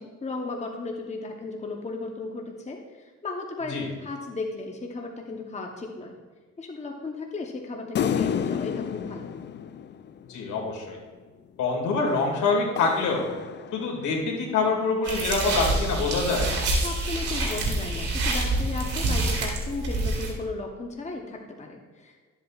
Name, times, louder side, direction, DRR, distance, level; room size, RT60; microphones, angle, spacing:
voice 1, 0.0-6.2 6.6-9.3 16.8-22.2, left 3 dB, 25° left, 2 dB, 0.9 m, -35 dB
sound 1, 7.9-10.6 12.1-14.1, left 8 dB, 40° left, 0.4 m, -31 dB
voice 2, 10.3-11.0 11.6-13.2 13.7-16.5, left 4 dB, 75° left, -2 dB, 2.3 m, -25 dB
sound 2, 15.0-20.3, right 2 dB, 90° right, 2.3 m, -27 dB
12.0 x 8.0 x 2.4 m, 1.4 s
cardioid pair, 90°, 30 cm